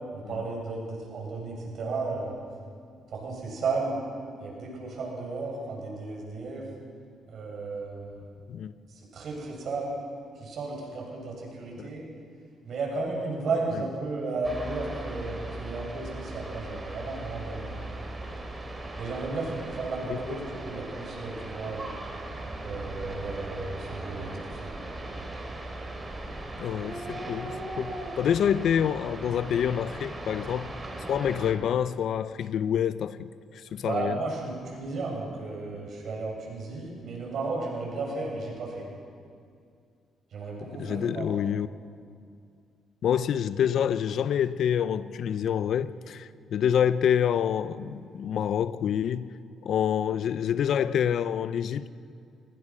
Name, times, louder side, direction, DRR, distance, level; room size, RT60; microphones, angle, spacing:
voice 1, 0.1-2.3 3.1-4.0 4.4-6.7 7.3-8.3 8.9-10.0 10.4-12.1 12.6-17.8 19.0-21.9 22.6-24.8 33.8-38.9 40.3-41.3, right 3 dB, 60° right, 8.0 m, -34 dB
sound 1, 14.4-31.5, right 2 dB, 25° right, 4.1 m, -38 dB
voice 2, 26.6-30.7 31.1-34.2 40.7-41.7 43.0-49.3 49.6-51.9, left 9 dB, 70° left, 0.8 m, -27 dB
28.5 x 19.5 x 6.3 m
cardioid pair, 90°, 0 cm